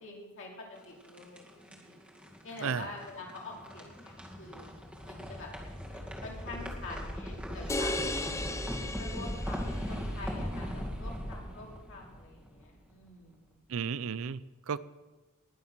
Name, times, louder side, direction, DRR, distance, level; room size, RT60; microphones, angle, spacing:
voice 1, 0.0-2.0 2.4-4.7 5.0-5.5 5.9-13.6, left 2 dB, 60° left, -2 dB, 2.7 m, -46 dB
sound 1, 0.8-12.8, equal, 5° right, 2.0 m, -39 dB
sound 2, 7.7-10.0, left 2 dB, 15° left, 0.6 m, -35 dB
voice 2, 13.7-14.8, right 6 dB, 65° right, 18 dB, 0.5 m, -34 dB
19.5 x 7.2 x 6.0 m, 1.2 s
head